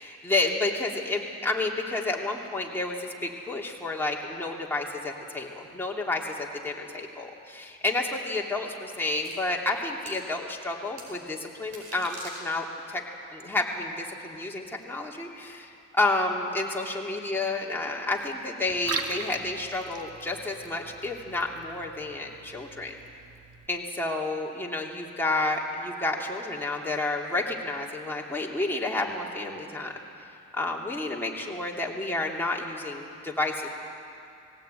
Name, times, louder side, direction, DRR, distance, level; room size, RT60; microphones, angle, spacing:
voice 1, 0.0-13.0 13.3-23.0 23.7-29.9 30.5-33.7, left 2 dB, 5° left, -2 dB, 2.9 m, -30 dB
sound 1, 9.2-9.3 10.1-10.2 11.0-11.1 11.6-12.8, right 2 dB, 70° right, 5.0 m, -43 dB
Liquid, 18.7-23.7, right 5 dB, 55° right, 1.6 m, -40 dB
19.5 x 16.5 x 9.1 m, 2.6 s
cardioid pair, 90°, 30 cm